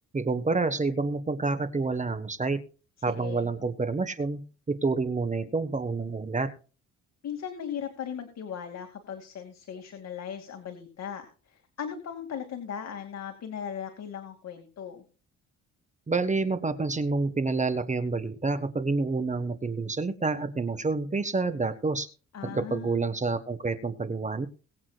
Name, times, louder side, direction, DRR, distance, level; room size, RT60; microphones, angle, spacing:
voice 1, 0.1-2.6 3.0-4.4 4.7-6.5 16.1-22.1 22.4-24.5, right 3 dB, 25° right, 10 dB, 1.4 m, -28 dB
voice 2, 3.1-3.5 7.2-15.0 22.3-23.0, left 8 dB, 60° left, 5 dB, 2.5 m, -38 dB
22.5 x 8.6 x 2.4 m, 0.36 s
cardioid pair, 90°, 30 cm